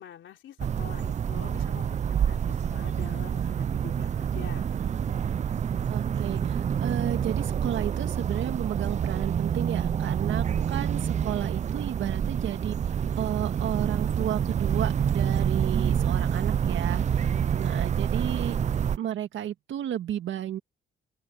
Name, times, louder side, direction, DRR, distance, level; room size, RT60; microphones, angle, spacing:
voice 1, 0.0-4.7 17.1-17.8, left 10 dB, 70° left, 3.9 m, -46 dB
sound 1, 0.6-19.0, right 8 dB, 35° right, 0.4 m, -27 dB
voice 2, 5.9-18.6 19.0-20.6, right 11 dB, 75° right, 1.9 m, -33 dB
open air
cardioid pair, 90°, 20 cm